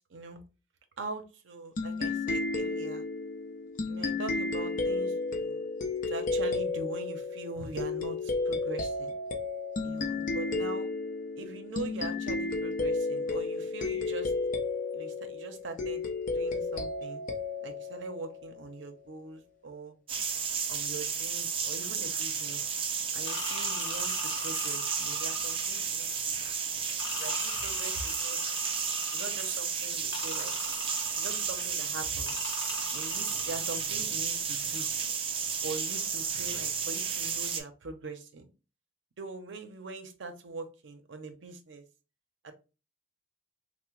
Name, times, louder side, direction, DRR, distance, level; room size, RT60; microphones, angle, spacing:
voice 1, 0.1-0.4 1.0-3.0 3.9-5.7 6.1-9.1 9.8-10.9 11.4-14.3 14.9-16.0 16.3-17.2 17.6-20.0 20.7-22.7 23.1-26.5 27.2-28.6 29.1-30.5 31.2-32.3 32.9-34.9 35.6-38.5 39.2-41.8 42.4-42.5, right 3 dB, 75° right, 6 dB, 0.6 m, -42 dB
sound 1, 1.8-18.9, left 3 dB, 45° left, 0.5 m, -33 dB
sound 2, 20.1-37.6, right 6 dB, 30° right, 0.4 m, -32 dB
sound 3, 23.3-25.8 27.0-29.6 30.1-31.7 32.3-33.9, left 3 dB, 75° left, 0.9 m, -40 dB
3.4 x 2.1 x 3.0 m, 0.31 s
head